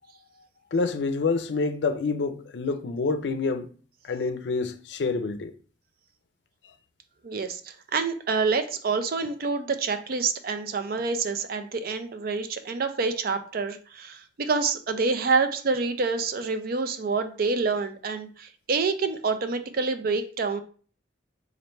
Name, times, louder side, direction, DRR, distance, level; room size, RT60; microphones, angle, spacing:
voice 1, 0.7-3.7 4.0-5.5, left 4 dB, 70° left, 0.4 m, -27 dB
voice 2, 7.2-20.6, right 4 dB, 55° right, 0.4 m, -27 dB
3.2 x 2.5 x 4.2 m
head